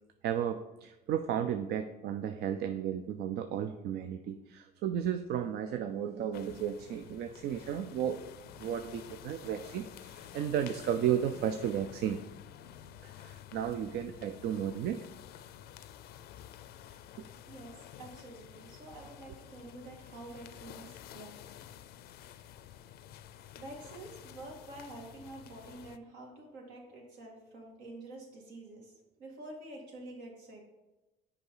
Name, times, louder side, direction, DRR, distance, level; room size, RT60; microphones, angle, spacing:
voice 1, 0.2-8.2 8.6-12.2 13.0-15.0 17.2-17.3, right 9 dB, 70° right, 8 dB, 0.5 m, -34 dB
sound 1, 6.3-26.0, left 10 dB, 70° left, 0.5 m, -51 dB
voice 2, 17.5-21.3 22.3-22.5 23.6-28.9 29.2-30.6, right 2 dB, 85° right, -1 dB, 2.3 m, -48 dB
6.8 x 4.8 x 5.5 m, 1.0 s
cardioid pair, 110°, 17 cm